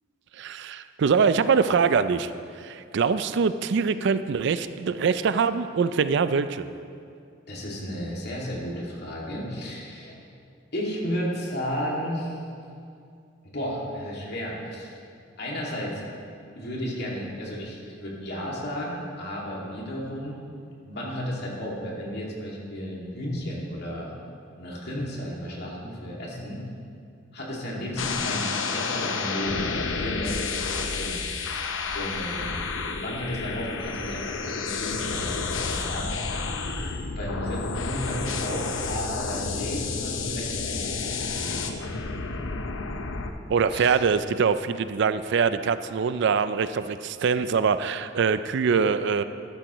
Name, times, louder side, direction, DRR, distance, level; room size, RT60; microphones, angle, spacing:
voice 1, 0.4-2.3 2.6-6.7 43.5-49.2, right 5 dB, 65° right, 12 dB, 0.4 m, -23 dB
voice 2, 7.5-10.2 10.7-12.4 13.5-15.0 15.4-16.0 16.5-20.4 20.9-24.1 24.6-26.6 27.3-31.2 31.9-32.6 32.9-36.1 37.2-42.0 43.7-44.0, equal, 55° left, -4 dB, 2.3 m, -33 dB
sound 1, 28.0-43.3, left 4 dB, 85° left, 0.7 m, -30 dB
12.5 x 12.0 x 3.1 m, 2.4 s
head